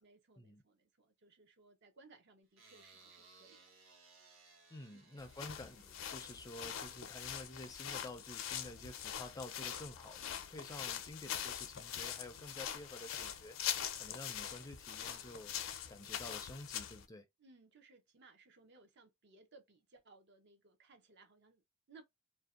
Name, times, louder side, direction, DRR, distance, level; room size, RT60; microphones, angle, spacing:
voice 1, 0.0-3.7 4.9-5.1 17.4-22.0, right 3 dB, 60° right, 0.6 m, -63 dB
sound 1, 2.6-7.9, right 4 dB, 75° right, 1.0 m, -64 dB
voice 2, 4.7-13.6 13.9-15.5 15.9-17.2, left 1 dB, 20° left, 0.4 m, -50 dB
sound 2, 5.2-17.0, left 9 dB, 75° left, 0.5 m, -43 dB
2.6 x 2.1 x 2.3 m
head